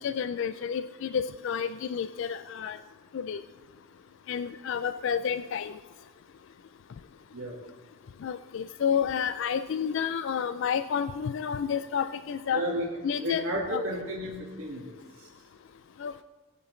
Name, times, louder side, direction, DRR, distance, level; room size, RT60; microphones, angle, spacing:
voice 1, 0.0-2.8 3.1-3.4 4.3-5.8 8.2-12.6 13.0-13.4 13.7-13.8 16.0-16.2, left 7 dB, 55° left, 12 dB, 0.3 m, -30 dB
voice 2, 12.5-12.9 13.1-15.3, equal, 65° right, -6 dB, 1.7 m, -33 dB
16.5 x 9.2 x 3.2 m, 1.2 s
head